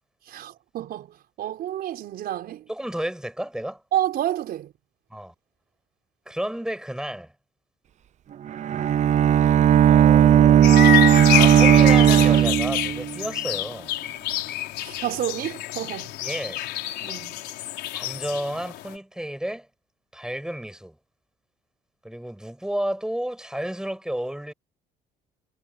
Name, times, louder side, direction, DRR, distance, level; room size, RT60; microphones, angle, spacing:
voice 1, 0.3-2.6 3.9-4.7 14.8-16.1 17.0-17.4, right 12 dB, 65° right, 5.1 m, -29 dB
voice 2, 2.7-3.8 5.1-5.3 6.3-7.3 9.8-13.9 16.2-16.6 17.9-19.7 20.1-21.0 22.0-24.5, right 1 dB, 5° right, 7.4 m, -32 dB
Bowed string instrument, 8.5-13.2, right 10 dB, 45° right, 0.6 m, -16 dB
sound 1, 10.6-18.9, left 15 dB, 80° left, 4.7 m, -27 dB
cardioid pair, 110°, 17 cm